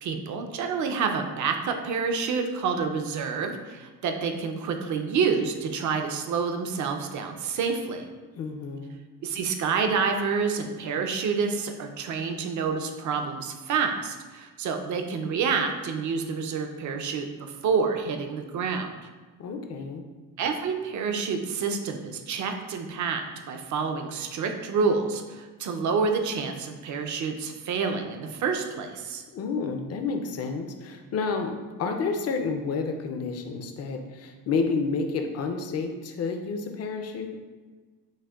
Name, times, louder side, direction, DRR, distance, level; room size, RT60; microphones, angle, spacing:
voice 1, 0.0-8.1 9.2-18.9 20.4-29.2, right 5 dB, 50° right, 5 dB, 0.5 m, -28 dB
voice 2, 8.4-9.0 19.4-20.0 29.3-31.5 31.8-37.4, left 4 dB, 40° left, 5 dB, 0.4 m, -30 dB
6.2 x 2.1 x 2.3 m, 1.4 s
cardioid pair, 115°, 38 cm